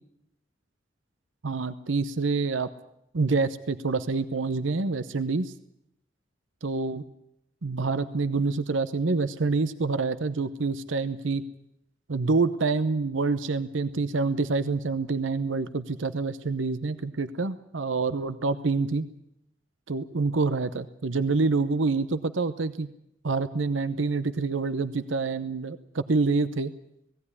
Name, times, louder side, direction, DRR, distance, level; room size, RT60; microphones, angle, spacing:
voice 1, 1.4-2.7 3.1-5.5 6.6-7.0 7.6-11.4 12.1-19.1 19.9-22.9 23.2-26.7, right 3 dB, 85° right, 13 dB, 0.9 m, -27 dB
18.0 x 16.5 x 9.8 m, 0.79 s
head